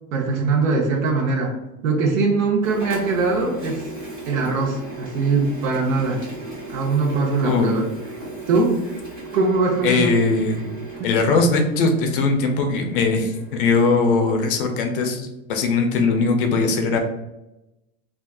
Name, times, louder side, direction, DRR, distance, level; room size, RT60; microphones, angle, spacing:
voice 1, 0.1-1.5 1.8-3.9 4.3-6.2 6.7-7.8 8.5-8.8 9.3-10.2 11.0-11.1, right 3 dB, 90° right, -1 dB, 0.8 m, -21 dB
Printer, 2.6-13.9, right 2 dB, 15° right, 0.6 m, -37 dB
voice 2, 7.4-7.8 9.8-10.7 11.0-17.0, left 3 dB, 45° left, 5 dB, 0.4 m, -20 dB
3.5 x 2.4 x 2.2 m, 0.95 s
supercardioid pair, 180°, 39 cm